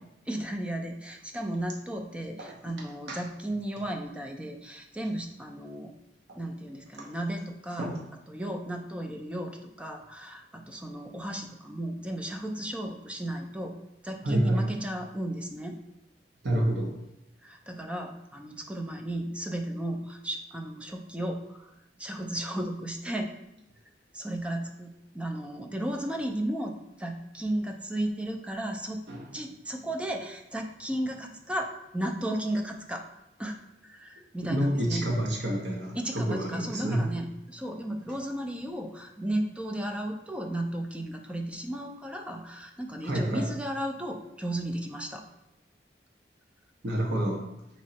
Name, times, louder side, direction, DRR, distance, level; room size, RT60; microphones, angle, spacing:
voice 1, 0.3-5.9 6.3-7.9 8.3-13.8 14.0-15.8 17.4-21.7 22.0-23.3 24.1-29.0 29.3-33.0 33.4-33.6 33.8-35.1 35.9-45.3, right 1 dB, 5° right, 3 dB, 0.4 m, -34 dB
voice 2, 14.2-14.6 16.4-16.9 29.1-29.2 34.4-37.0 43.0-43.5 46.8-47.4, right 1 dB, 65° right, -1 dB, 0.9 m, -28 dB
5.2 x 3.0 x 2.8 m, 0.91 s
head